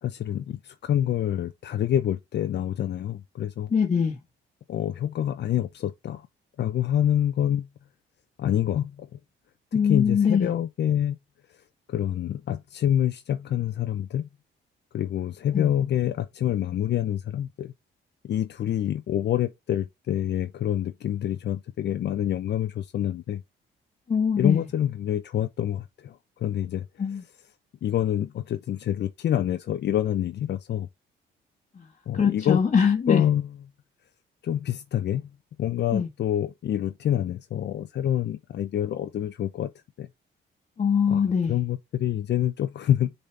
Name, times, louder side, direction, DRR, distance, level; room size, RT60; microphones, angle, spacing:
voice 1, 0.0-3.7 4.7-6.3 6.6-7.7 8.4-9.2 9.7-11.2 11.9-14.3 14.9-17.7 18.2-23.4 24.4-26.9 27.8-30.9 32.1-32.6 33.1-33.5 34.4-35.3 35.6-39.7 40.0-40.1 41.1-41.2 41.5-43.1, left 11 dB, 60° left, 0.7 m, -27 dB
voice 2, 3.7-4.2 9.7-10.5 15.5-15.7 24.1-24.7 27.0-27.2 31.7-31.9 32.1-33.2 35.9-36.1 40.8-41.6, left 6 dB, 35° left, 1.4 m, -22 dB
6.8 x 4.2 x 3.3 m
cardioid pair, 90°, 20 cm